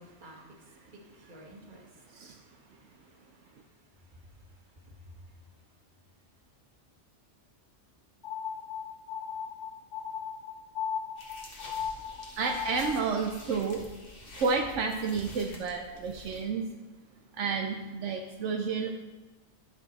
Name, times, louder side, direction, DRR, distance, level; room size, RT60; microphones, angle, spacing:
voice 1, 0.0-3.0 4.1-4.2 4.9-5.2, equal, 40° right, -1 dB, 1.5 m, -53 dB
voice 2, 2.1-2.4 2.7-2.8 12.4-13.9 14.3-16.7 17.3-18.9, right 5 dB, 80° right, 3 dB, 1.0 m, -31 dB
sound 1, 8.2-13.1, left 7 dB, 75° left, 1.1 m, -37 dB
sound 2, 11.2-16.4, left 1 dB, 50° left, 1.6 m, -48 dB
11.5 x 6.1 x 4.0 m, 1.2 s
omnidirectional pair, 1.3 m